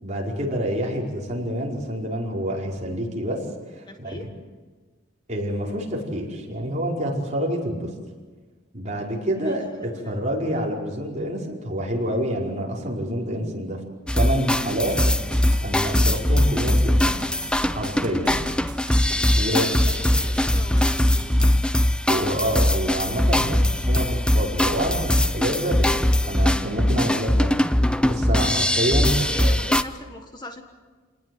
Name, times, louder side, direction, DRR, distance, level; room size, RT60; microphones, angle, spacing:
voice 1, 0.0-3.4 3.7-4.3 5.3-7.9 8.7-13.8 14.1-14.9 15.6-17.2 17.7-18.4 19.3-19.6 22.1-27.6 28.0-29.5, equal, 40° right, -2 dB, 5.1 m, -27 dB
voice 2, 3.9-4.2 9.3-10.2 19.3-21.6 29.3-30.6, left 1 dB, 20° left, 5 dB, 1.6 m, -41 dB
sound 1, 14.1-29.8, left 1 dB, 5° left, 0.7 m, -21 dB
sound 2, 14.8-21.5, right 1 dB, 25° right, 2.3 m, -40 dB
29.0 x 19.5 x 8.0 m, 1.4 s
head